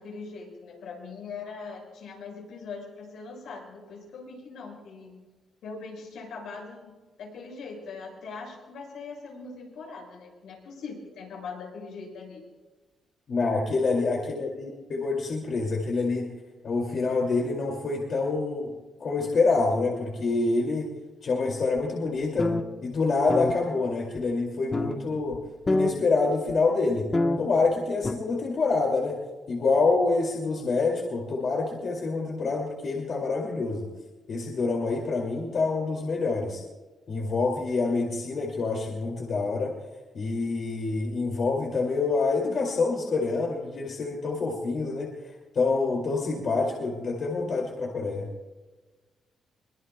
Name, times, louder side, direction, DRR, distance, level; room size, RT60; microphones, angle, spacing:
voice 1, 0.0-5.2 5.6-12.5, left 4 dB, 85° left, -1 dB, 6.6 m, -41 dB
voice 2, 13.3-16.3 16.6-18.7 19.0-20.9 21.2-22.5 22.8-25.4 25.7-27.1 27.4-29.2 29.5-33.9 34.3-36.6 37.1-39.7 40.1-45.1 45.5-48.3, left 3 dB, 50° left, -1 dB, 2.5 m, -26 dB
sound 1, 22.2-22.6 22.9-23.0 23.3-23.5 24.2-24.3 24.7-25.0 25.3-25.4 25.7-25.9 26.5-26.6 27.1-27.4 28.0-28.1, left 2 dB, 25° left, 1.1 m, -25 dB
23.0 x 21.5 x 2.3 m, 1.2 s
cardioid pair, 135°, 0 cm